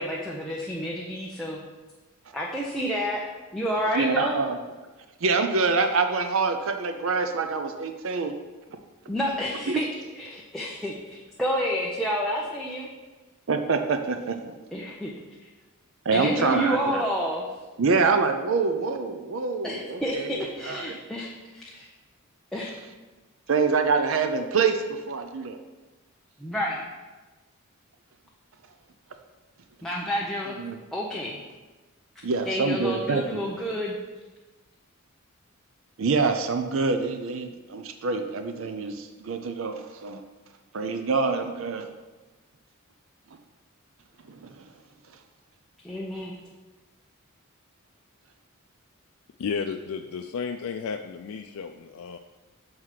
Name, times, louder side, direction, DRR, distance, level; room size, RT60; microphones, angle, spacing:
voice 1, 0.0-1.6 2.3-3.2 3.5-4.4 9.1-9.9 10.1-12.9 14.7-15.1 16.1-17.5 17.9-18.0 19.6-21.9 22.5-22.7 26.4-26.8 29.8-30.6 30.9-31.4 32.4-34.0 45.8-46.3, equal, ahead, -4 dB, 0.7 m, -29 dB
voice 2, 3.9-4.6 5.2-8.3 9.7-9.8 13.5-14.5 16.1-17.0 17.8-21.0 23.5-25.6 30.6-30.8 32.2-33.4 36.0-40.2 40.7-41.9 44.3-44.5, right 4 dB, 65° right, 7 dB, 0.6 m, -26 dB
voice 3, 49.4-52.2, left 5 dB, 80° left, 5 dB, 0.4 m, -33 dB
6.5 x 4.7 x 5.8 m, 1.2 s
head